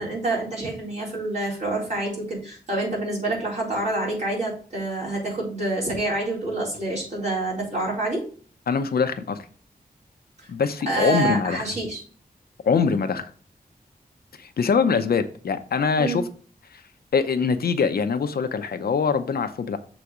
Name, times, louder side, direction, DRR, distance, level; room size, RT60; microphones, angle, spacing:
voice 1, 0.0-8.2 10.9-12.0 16.0-16.2, right 2 dB, 45° right, -5 dB, 4.0 m, -27 dB
voice 2, 8.7-9.4 10.5-11.6 12.6-13.3 14.4-16.2 16.7-16.8 17.1-19.8, left 5 dB, 75° left, 8 dB, 0.7 m, -23 dB
6.9 x 4.1 x 4.8 m, 0.42 s
wide cardioid pair, 150°, 16 cm